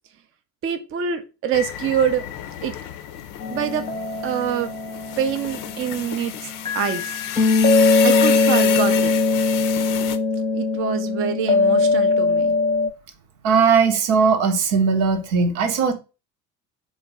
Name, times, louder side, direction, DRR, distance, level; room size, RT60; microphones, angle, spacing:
voice 1, 0.6-2.2 2.6-2.7 3.5-3.9 4.2-4.7 5.2-7.2 8.0-9.1 10.5-12.5, right 8 dB, 30° right, 0.5 m, -25 dB
sound 1, 1.5-10.2, left 10 dB, 45° left, 0.5 m, -31 dB
sound 2, 3.4-6.2 6.7-12.9, left 3 dB, 10° left, 0.7 m, -20 dB
voice 2, 13.4-15.9, right 5 dB, 65° right, 0.8 m, -18 dB
3.8 x 2.1 x 3.6 m
figure-of-eight pair, 60°, 47 cm